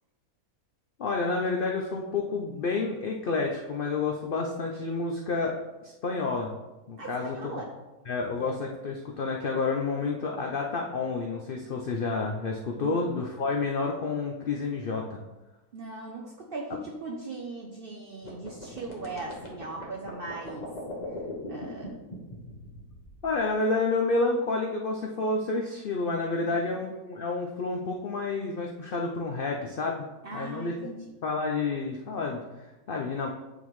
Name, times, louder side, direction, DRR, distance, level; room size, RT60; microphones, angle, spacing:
voice 1, 1.0-6.5 6.9-7.6 8.1-15.2 16.7-16.8 23.2-30.1 30.3-30.9 31.2-33.3, left 3 dB, 75° left, 1 dB, 0.5 m, -29 dB
voice 2, 7.0-7.7 12.8-13.0 15.7-20.7 21.5-22.0 26.4-26.6 30.2-31.0, right 3 dB, 60° right, 0 dB, 0.6 m, -39 dB
sound 1, 18.2-23.5, left 2 dB, 30° left, 1.2 m, -40 dB
8.9 x 3.6 x 3.1 m, 1.1 s
omnidirectional pair, 1.6 m